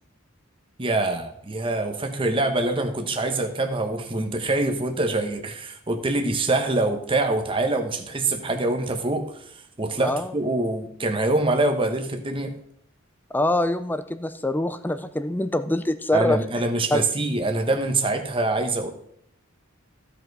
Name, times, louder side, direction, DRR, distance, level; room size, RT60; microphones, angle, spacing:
voice 1, 0.8-12.6 16.1-18.9, right 2 dB, 25° right, 5 dB, 1.1 m, -25 dB
voice 2, 10.0-10.3 13.3-16.4 16.9-17.0, left 1 dB, 10° left, 11 dB, 0.5 m, -24 dB
15.0 x 5.2 x 4.7 m, 0.69 s
head